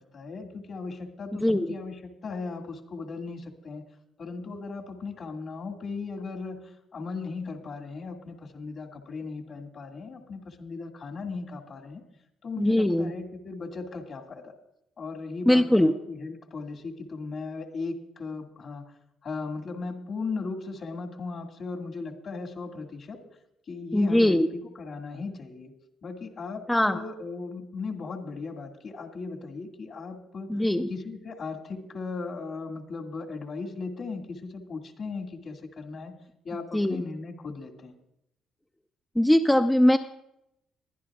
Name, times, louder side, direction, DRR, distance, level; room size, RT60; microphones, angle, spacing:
voice 1, 0.0-3.8 4.2-12.0 12.4-14.5 15.0-18.8 19.2-23.2 23.7-25.7 26.0-30.6 30.9-36.2 36.4-38.0, left 4 dB, 55° left, 2 dB, 2.0 m, -37 dB
voice 2, 1.4-1.7 12.6-13.1 15.5-15.9 23.9-24.5 26.7-27.0 30.5-30.9 36.7-37.0 39.2-40.0, left 1 dB, 10° left, 6 dB, 0.6 m, -21 dB
22.0 x 11.0 x 2.4 m, 0.83 s
supercardioid pair, 60°, 0 cm